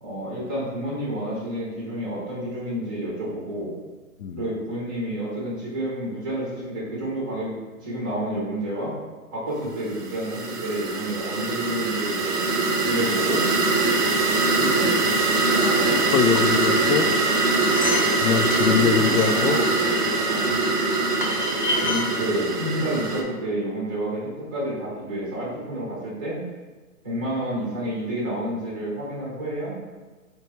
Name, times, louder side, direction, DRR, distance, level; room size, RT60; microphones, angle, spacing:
voice 1, 0.0-3.7 4.3-7.6 7.8-8.9 9.3-12.3 12.8-13.4 14.5-14.9 15.5-16.0 18.2-18.4 18.6-19.7 20.2-20.6 21.8-26.4 27.0-29.7, right 1 dB, 15° right, -7 dB, 0.7 m, -29 dB
sound 1, 9.9-23.2, right 3 dB, 80° right, 0.7 m, -23 dB
voice 2, 15.7-17.1 18.2-19.6 20.5-20.7, left 7 dB, 90° left, 8 dB, 0.5 m, -23 dB
sound 2, 17.4-20.0 20.9-21.0 21.2-22.1 22.8-22.9 23.1-23.2, left 2 dB, 35° left, 0.4 m, -29 dB
4.5 x 2.2 x 3.1 m, 1.3 s
hypercardioid pair, 150°, 46 cm